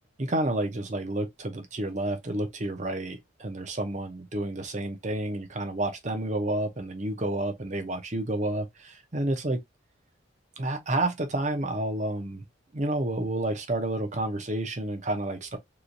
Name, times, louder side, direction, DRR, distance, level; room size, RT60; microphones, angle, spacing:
voice 1, 0.2-9.6 10.6-12.4 12.7-15.6, right 1 dB, 35° right, 0.7 m, -30 dB
3.1 x 3.0 x 2.6 m
head